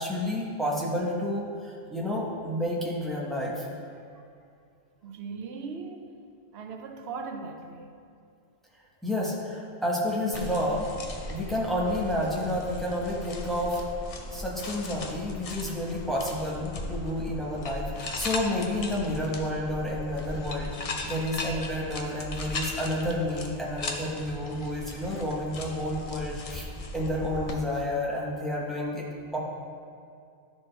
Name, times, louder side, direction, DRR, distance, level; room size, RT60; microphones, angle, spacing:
voice 1, 0.0-3.7 9.0-10.9 11.3-13.8 14.3-26.7 26.9-29.4, left 1 dB, ahead, -5 dB, 1.0 m, -30 dB
voice 2, 5.0-6.1 6.5-7.9, right 4 dB, 75° right, 5 dB, 0.9 m, -38 dB
sound 1, 10.3-27.6, left 2 dB, 45° left, 0.5 m, -38 dB
11.5 x 4.3 x 3.3 m, 2.3 s
omnidirectional pair, 1.1 m